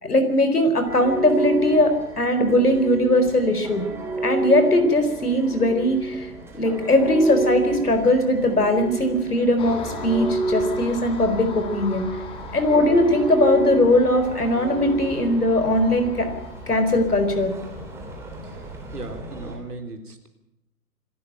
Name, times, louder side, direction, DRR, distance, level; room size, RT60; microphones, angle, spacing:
voice 1, 0.0-3.8 4.2-12.1 12.5-16.3 16.7-17.5, left 1 dB, 75° left, 8 dB, 4.4 m, -20 dB
sound 1, 0.9-19.6, right 2 dB, 5° right, 3.5 m, -31 dB
Car passing by, 9.6-19.0, left 3 dB, 10° left, 1.9 m, -40 dB
voice 2, 18.4-20.3, right 2 dB, 75° right, 5 dB, 3.7 m, -38 dB
26.0 x 13.5 x 9.1 m, 0.87 s
figure-of-eight pair, 135°, 46 cm